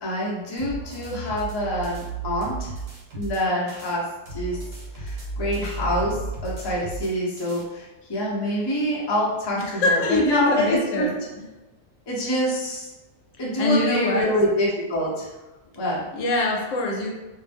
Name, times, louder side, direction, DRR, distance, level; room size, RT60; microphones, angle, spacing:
voice 1, 0.0-2.7 3.1-4.0 4.3-4.6 5.0-6.1 6.4-7.8 8.1-11.1 12.1-12.9 13.4-15.3 15.8-16.0, equal, 30° left, -5 dB, 0.5 m, -25 dB
sound 1, 0.6-3.9 4.3-7.6, right 3 dB, 85° right, 1.1 m, -34 dB
voice 2, 9.6-11.2 13.4-14.3 16.1-17.1, left 2 dB, 85° left, 0 dB, 1.0 m, -24 dB
2.5 x 2.0 x 3.4 m, 1.1 s
omnidirectional pair, 1.3 m